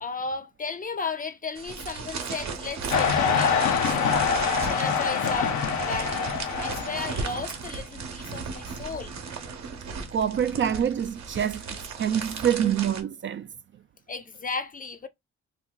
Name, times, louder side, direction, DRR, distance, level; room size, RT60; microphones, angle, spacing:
voice 1, 0.0-4.3 4.7-5.6 5.9-6.3 6.6-9.1 14.1-15.1, left 4 dB, 30° left, 0.5 m, -34 dB
sound 1, 1.5-13.0, right 5 dB, 65° right, 0.8 m, -36 dB
sound 2, 2.9-7.3, left 6 dB, 75° left, 0.7 m, -25 dB
voice 2, 10.1-13.5, right 9 dB, 40° right, 0.4 m, -26 dB
2.6 x 2.2 x 3.8 m
supercardioid pair, 60°, 29 cm